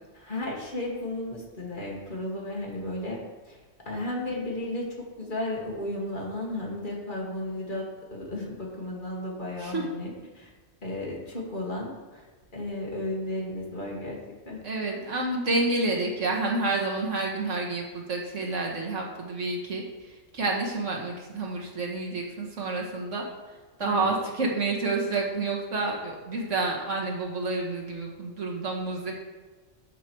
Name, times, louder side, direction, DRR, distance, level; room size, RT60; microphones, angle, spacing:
voice 1, 0.1-3.6 3.9-10.5 10.8-12.2 12.5-14.2 14.5-14.6 23.8-24.1, left 1 dB, 40° left, -2 dB, 2.0 m, -34 dB
voice 2, 14.6-19.8 20.3-23.2 23.8-29.1, right 3 dB, 90° right, -1 dB, 1.9 m, -29 dB
12.0 x 5.0 x 4.6 m, 1.3 s
omnidirectional pair, 1.2 m